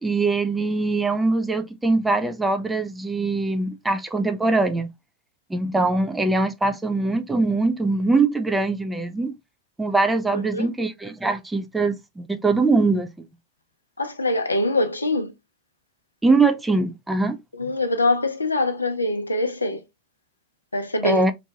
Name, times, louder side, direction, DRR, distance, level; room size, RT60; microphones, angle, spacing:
voice 1, 0.0-4.9 5.5-9.4 9.8-13.3 16.2-17.4 21.0-21.3, right 3 dB, 10° right, 0.4 m, -22 dB
voice 2, 10.3-10.7 14.0-15.3 17.5-19.8 20.7-21.2, left 2 dB, 80° left, 0.4 m, -24 dB
2.6 x 2.2 x 2.6 m
figure-of-eight pair, 90°, 0 cm